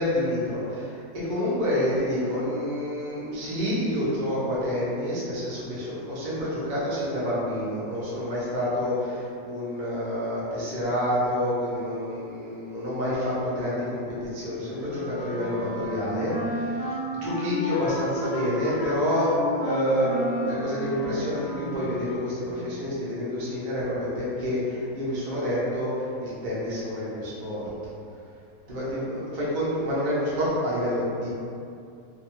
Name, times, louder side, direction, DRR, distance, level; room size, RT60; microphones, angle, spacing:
voice 1, 0.0-16.9 17.1-27.6 28.7-31.4, left 1 dB, 80° right, -9 dB, 0.4 m, -28 dB
Wind instrument woodwind instrument, 14.9-22.4, equal, 75° left, 0.6 m, -32 dB
2.7 x 2.3 x 2.9 m, 2.5 s
omnidirectional pair, 1.8 m